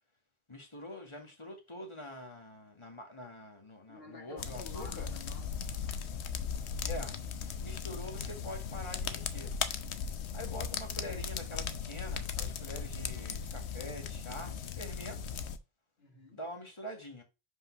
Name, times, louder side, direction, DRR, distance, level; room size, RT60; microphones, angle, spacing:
voice 1, 0.5-5.1 6.9-9.5 10.3-15.2 16.3-17.2, left 1 dB, 25° left, 1.6 m, -45 dB
voice 2, 3.9-5.8 16.0-16.4, left 3 dB, 65° left, 2.1 m, -51 dB
sound 1, 4.4-15.6, left 6 dB, 90° left, 1.0 m, -38 dB
5.4 x 3.9 x 5.5 m
omnidirectional pair, 1.1 m